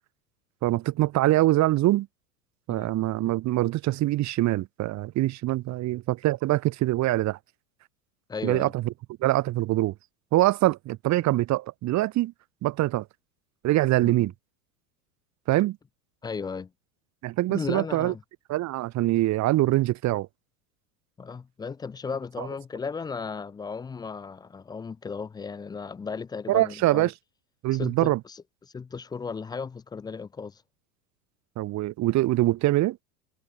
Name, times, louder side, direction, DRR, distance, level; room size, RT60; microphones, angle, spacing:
voice 1, 0.6-2.1 2.7-7.4 8.4-8.9 9.2-9.9 10.3-12.3 12.6-13.1 13.6-14.3 15.5-15.8 17.2-18.1 18.5-20.3 22.4-22.5 26.5-27.1 27.6-28.2 31.6-33.0, right 16 dB, 40° right, 1.0 m, -24 dB
voice 2, 8.3-8.7 14.0-14.2 16.2-16.7 17.5-18.2 21.2-27.1 27.7-30.6, left 5 dB, 10° left, 0.4 m, -35 dB
hypercardioid pair, 90°, 44 cm